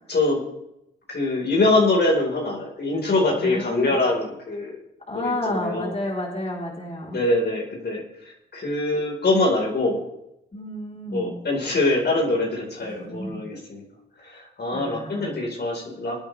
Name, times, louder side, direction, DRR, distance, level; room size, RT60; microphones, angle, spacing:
voice 1, 0.1-0.4 1.1-4.8 5.1-5.9 7.1-10.0 11.1-13.8 14.2-16.2, left 2 dB, 50° left, -1 dB, 4.8 m, -24 dB
voice 2, 3.4-3.9 5.1-7.2 10.5-11.4 12.9-13.4 14.7-15.4, left 1 dB, 30° left, -2 dB, 4.2 m, -31 dB
23.0 x 9.1 x 3.5 m, 0.82 s
supercardioid pair, 45°, 21 cm